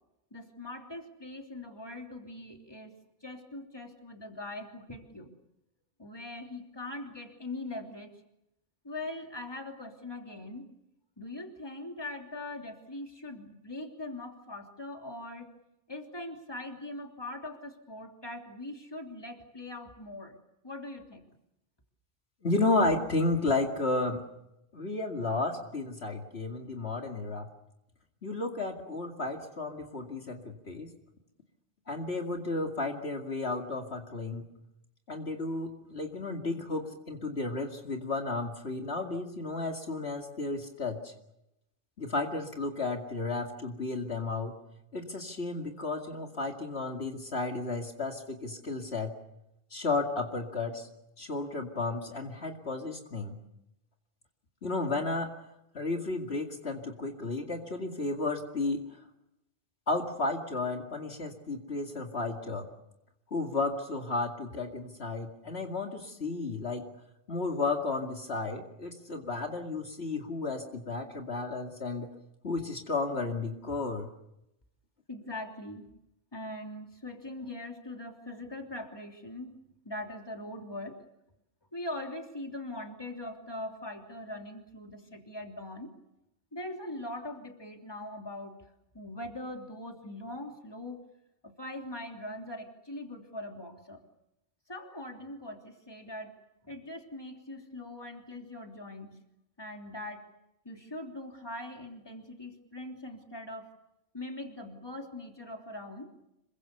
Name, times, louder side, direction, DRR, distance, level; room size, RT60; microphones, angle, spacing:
voice 1, 0.3-5.3 6.0-8.2 8.8-10.7 11.2-15.5 15.9-20.4 20.6-21.2 75.1-75.9 76.3-79.6 79.8-81.0 81.7-85.9 86.5-88.6 88.9-91.0 91.4-94.0 94.7-96.3 96.6-99.2 99.6-100.3 100.6-103.7 104.1-106.1, left 1 dB, 20° left, 3 dB, 3.2 m, -41 dB
voice 2, 22.4-24.2 24.7-27.5 28.2-30.9 31.9-34.4 35.1-41.1 42.0-44.6 44.9-49.1 49.7-50.9 51.2-53.4 54.6-55.3 55.7-58.8 59.9-62.7 63.3-66.9 67.3-72.1 72.4-74.1, left 3 dB, 60° left, 3 dB, 2.6 m, -33 dB
27.0 x 23.5 x 6.9 m, 0.86 s
omnidirectional pair, 1.2 m